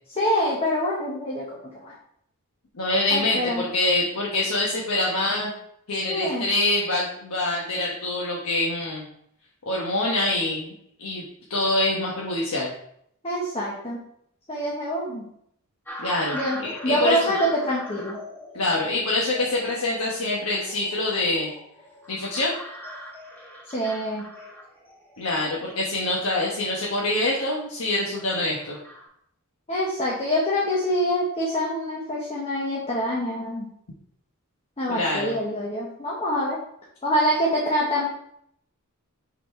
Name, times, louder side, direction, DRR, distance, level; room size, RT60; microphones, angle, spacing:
voice 1, 0.1-1.4 1.7-1.9 3.1-3.6 6.1-6.5 13.2-14.0 14.5-15.2 16.3-18.2 23.7-24.2 29.7-33.7 34.8-36.6 37.0-38.1, equal, 25° left, -4 dB, 1.1 m, -25 dB
voice 2, 2.7-5.5 5.9-9.0 9.7-10.7 11.0-11.2 11.5-12.7 16.0-17.3 18.5-21.5 22.1-22.6 25.2-28.8 34.9-35.3, left 2 dB, 85° left, -4 dB, 1.2 m, -25 dB
sound 1, 15.9-29.1, equal, 10° left, 1.3 m, -41 dB
5.6 x 4.2 x 4.4 m, 0.70 s
head